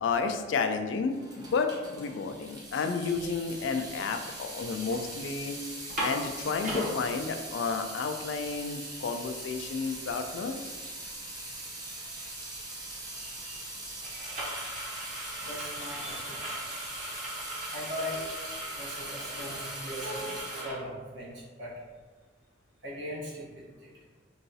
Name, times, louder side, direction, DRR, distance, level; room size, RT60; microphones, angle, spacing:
voice 1, 0.0-5.6 6.0-10.6, left 5 dB, 75° left, 6 dB, 0.3 m, -31 dB
Water tap faucet / Sink (filling or washing) / Drip, 1.0-20.6, right 2 dB, 20° right, 0.5 m, -42 dB
sound 1, 3.3-3.4 3.8-5.0 5.3-5.4 5.7-6.9 7.5-7.6 7.9-20.7, equal, 40° right, 0.8 m, -39 dB
voice 2, 13.1-13.8 15.4-16.6 17.7-18.2 18.7-20.4 20.6-21.3 21.6-21.7 22.8-23.4 23.8-23.9, equal, 75° right, -6 dB, 1.1 m, -41 dB
3.8 x 2.3 x 2.7 m, 1.4 s
head